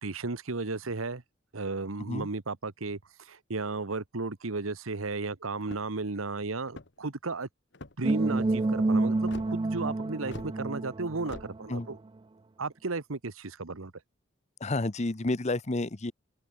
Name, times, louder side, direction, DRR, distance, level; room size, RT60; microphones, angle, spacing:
voice 1, 0.0-1.2 1.5-7.5 8.0-12.0 12.6-13.9, right 3 dB, 90° right, 1.2 m, -34 dB
sound 1, 5.6-6.0 6.6-7.1 7.7-8.2 9.3-9.5 10.3-10.5 11.3-11.5, left 2 dB, 60° left, 1.9 m, -44 dB
sound 2, 8.0-12.0, right 2 dB, 25° right, 0.4 m, -29 dB
voice 2, 14.6-16.1, left 2 dB, 35° left, 0.9 m, -30 dB
open air
head